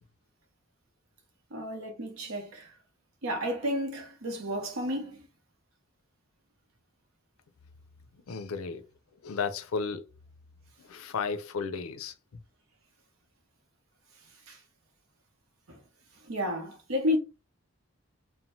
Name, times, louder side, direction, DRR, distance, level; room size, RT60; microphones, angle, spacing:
voice 1, 1.5-2.7 3.2-5.3 14.5-14.6 15.7-15.8 16.2-17.2, left 1 dB, 80° right, 0.8 m, -32 dB
voice 2, 8.3-8.8 9.2-10.0 10.9-12.1, left 5 dB, 90° left, 0.5 m, -33 dB
2.7 x 2.1 x 3.0 m
head